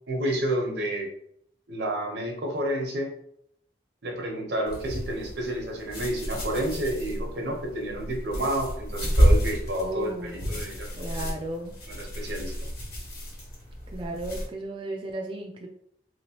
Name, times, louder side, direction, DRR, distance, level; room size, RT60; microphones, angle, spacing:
voice 1, 0.1-1.1 1.7-3.1 4.0-10.9 11.2-11.3 11.9-12.5, right 1 dB, 80° right, 1 dB, 0.9 m, -30 dB
sound 1, 4.7-14.5, equal, 55° left, 1.3 m, -29 dB
voice 2, 9.8-10.5 10.9-11.7 13.9-15.7, right 2 dB, 30° right, 0 dB, 0.3 m, -34 dB
3.1 x 2.9 x 2.9 m, 0.70 s
head